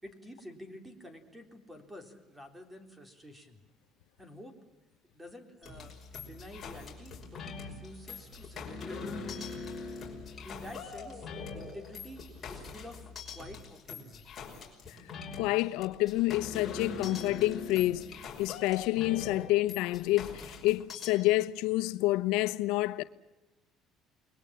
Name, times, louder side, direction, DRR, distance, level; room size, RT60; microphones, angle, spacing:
voice 1, 0.0-3.6 4.2-4.6 5.1-9.2 10.4-11.3 11.5-14.3, equal, 10° right, 3.8 m, -49 dB
sound 1, 5.6-21.1, left 4 dB, 25° left, 5.8 m, -42 dB
sound 2, 5.7-13.6, left 3 dB, 35° right, 5.2 m, -53 dB
voice 2, 15.4-23.0, left 18 dB, 90° left, 0.9 m, -28 dB
30.0 x 22.0 x 7.4 m
cardioid pair, 145°, 0 cm